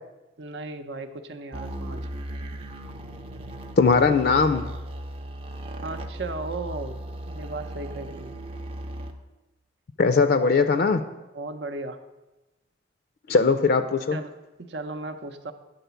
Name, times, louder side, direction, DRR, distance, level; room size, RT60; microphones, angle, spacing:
voice 1, 0.4-2.1 5.8-7.0 7.3-8.4 11.3-12.0 14.1-14.3 14.6-15.5, right 3 dB, 70° right, 8 dB, 0.6 m, -36 dB
sound 1, 1.5-9.1, right 1 dB, 30° right, 0.6 m, -37 dB
voice 2, 3.8-4.7 10.0-11.0 13.3-14.2, left 4 dB, 55° left, 9 dB, 0.4 m, -20 dB
9.2 x 4.0 x 6.9 m, 1.0 s
head